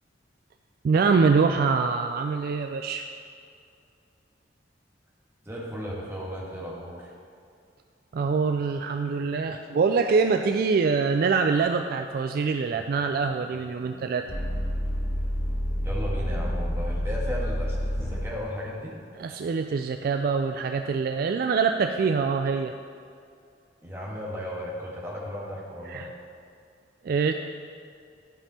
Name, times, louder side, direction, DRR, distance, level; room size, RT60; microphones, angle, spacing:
voice 1, 0.8-3.1 8.1-14.2 19.2-22.7 25.9-26.1 27.0-27.3, right 5 dB, 55° right, 6 dB, 0.3 m, -24 dB
voice 2, 5.4-7.1 15.8-18.9 23.8-26.1, equal, 15° right, -4 dB, 1.5 m, -35 dB
sound 1, 12.7-18.2, equal, 20° left, 2.3 m, -30 dB
11.5 x 5.3 x 4.2 m, 2.4 s
head